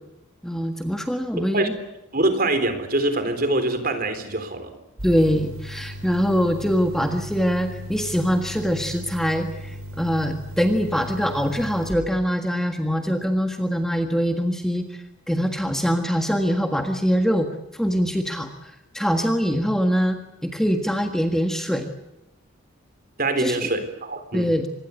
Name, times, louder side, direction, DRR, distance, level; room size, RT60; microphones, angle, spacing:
voice 1, 0.4-1.7 5.0-14.9 15.3-21.9 23.4-23.7 24.3-24.7, equal, ahead, 4 dB, 1.6 m, -23 dB
voice 2, 1.4-1.7 2.1-4.8 23.2-24.5, right 2 dB, 40° right, 9 dB, 3.8 m, -24 dB
sound 1, 5.0-11.9, equal, 75° right, 4.8 m, -37 dB
26.0 x 21.0 x 8.3 m, 0.95 s
head